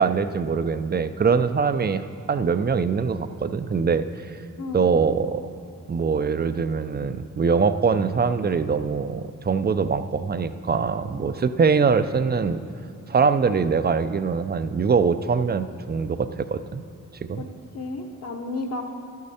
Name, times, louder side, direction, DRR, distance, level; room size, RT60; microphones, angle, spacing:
voice 1, 0.0-4.4 4.7-5.4 5.9-12.6 13.1-16.8 17.3-17.5, right 5 dB, 30° right, 11 dB, 0.4 m, -23 dB
voice 2, 4.6-4.9 17.4-17.5 17.7-18.8, left 2 dB, 45° left, 3 dB, 0.9 m, -32 dB
12.0 x 8.4 x 4.2 m, 2.4 s
wide cardioid pair, 110°, 35 cm